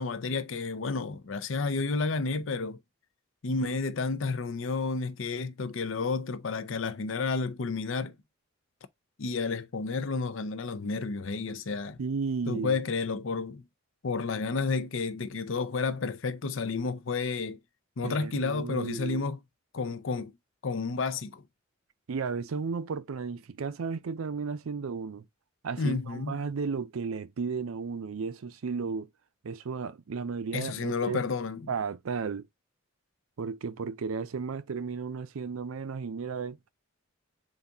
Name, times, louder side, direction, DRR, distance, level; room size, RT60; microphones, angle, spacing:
voice 1, 0.0-2.8 3.4-8.2 9.2-12.0 12.5-13.6 14.0-17.6 18.0-19.4 19.7-20.3 20.6-21.4 25.8-26.3 30.5-31.7, left 4 dB, 65° left, 0.6 m, -31 dB
voice 2, 12.0-12.8 18.0-19.2 22.1-25.2 25.6-29.1 29.4-31.2 31.7-32.4 33.4-36.6, right 5 dB, 80° right, 0.5 m, -34 dB
4.1 x 2.6 x 3.5 m
head